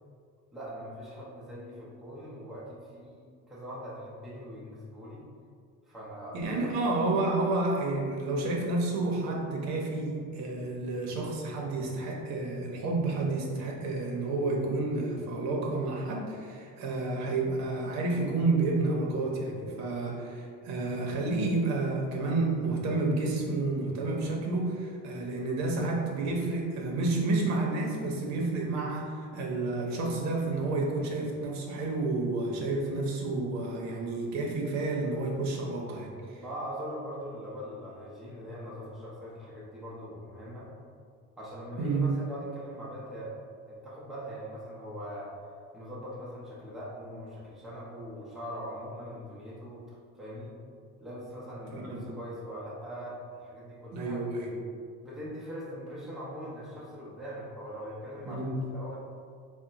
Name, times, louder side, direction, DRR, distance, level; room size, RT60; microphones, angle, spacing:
voice 1, 0.5-5.2 5.9-6.7 36.4-40.7 41.4-43.3 43.7-45.3 45.7-50.6 51.0-54.2 55.0-59.1, equal, ahead, -8 dB, 0.7 m, -41 dB
voice 2, 6.3-36.4 41.8-42.1 51.7-52.1 53.9-54.5 58.3-58.5, right 2 dB, 60° right, -1 dB, 0.8 m, -30 dB
3.6 x 2.2 x 3.9 m, 2.2 s
cardioid pair, 145°, 31 cm